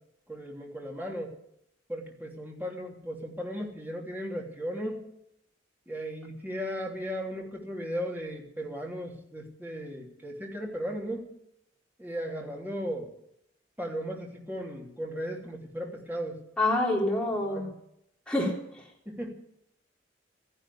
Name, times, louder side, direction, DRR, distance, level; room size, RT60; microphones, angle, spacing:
voice 1, 0.3-1.3 1.9-5.1 5.9-11.3 12.0-13.1 13.8-16.4 17.4-17.7 19.0-19.3, equal, 10° right, -1 dB, 3.3 m, -36 dB
voice 2, 16.6-17.7 18.3-18.5, left 1 dB, 5° left, -3 dB, 3.9 m, -26 dB
14.5 x 11.0 x 8.4 m, 0.76 s
head